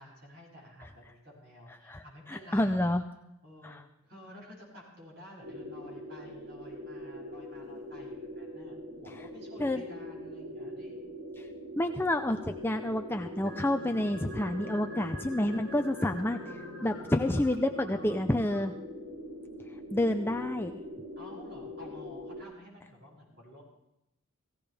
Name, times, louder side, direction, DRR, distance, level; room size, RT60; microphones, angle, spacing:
voice 1, 0.0-2.7 3.4-11.0 21.2-23.6, left 1 dB, 50° right, -3 dB, 7.1 m, -52 dB
voice 2, 2.3-3.0 3.6-3.8 9.6-9.8 11.4-11.5 11.7-16.4 16.8-18.7 19.9-20.7, left 1 dB, 10° left, 6 dB, 0.4 m, -29 dB
sound 1, 5.4-22.4, left 1 dB, 85° right, 5.8 m, -43 dB
sound 2, 13.4-18.6, equal, 65° right, 3.8 m, -45 dB
18.0 x 16.0 x 3.4 m, 0.85 s
head